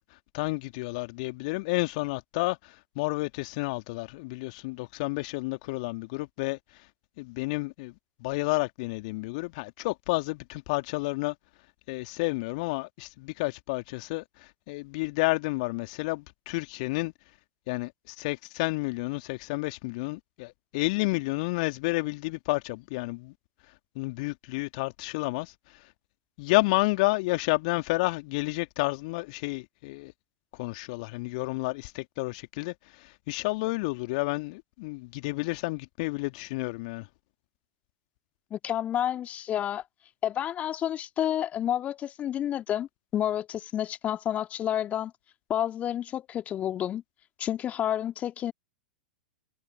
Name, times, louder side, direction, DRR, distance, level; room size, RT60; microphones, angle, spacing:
voice 1, 0.0-6.9 7.2-7.9 8.2-11.4 11.9-17.1 17.7-23.3 23.7-25.9 26.4-30.1 30.5-37.1, left 25 dB, 45° left, 1.9 m, -31 dB
voice 2, 38.5-39.8 40.2-45.1 45.5-47.0 47.4-48.5, left 11 dB, 25° left, 2.3 m, -30 dB
figure-of-eight pair, 100°, 6 cm